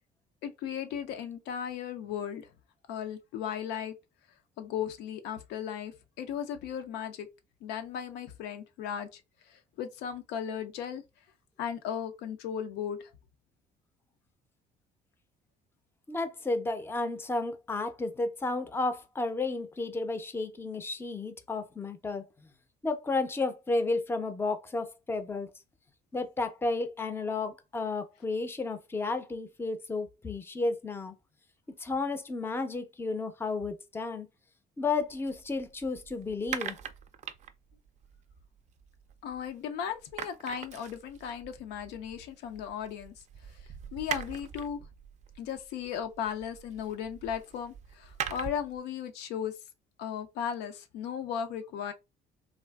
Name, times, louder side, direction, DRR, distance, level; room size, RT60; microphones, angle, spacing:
voice 1, 0.4-2.5 2.9-3.9 4.6-7.3 7.6-9.2 9.5-11.0 11.6-13.1 39.2-43.1 43.9-44.8 45.4-49.5 50.0-51.9, left 8 dB, 85° left, 0.5 m, -36 dB
voice 2, 16.1-22.2 22.8-25.5 26.1-31.2 31.8-34.3 34.8-36.8, left 3 dB, 15° left, 0.5 m, -32 dB
sound 1, 35.0-39.6 39.9-48.8, right 8 dB, 45° right, 0.4 m, -43 dB
3.4 x 2.4 x 2.3 m
cardioid pair, 110°, 17 cm